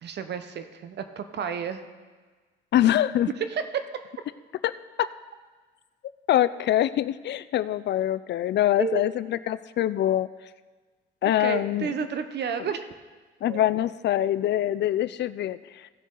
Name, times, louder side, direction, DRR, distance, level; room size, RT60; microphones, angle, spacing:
voice 1, 0.0-1.8 3.5-3.6 8.8-9.0 11.4-12.8 13.4-13.7, right 7 dB, 60° right, 9 dB, 0.9 m, -31 dB
voice 2, 2.7-3.3 4.6-4.7 5.0-5.1 6.3-10.3 11.2-12.0 13.4-15.9, left 12 dB, 60° left, 15 dB, 0.4 m, -24 dB
16.0 x 6.4 x 3.8 m, 1.4 s
cardioid pair, 90°, 20 cm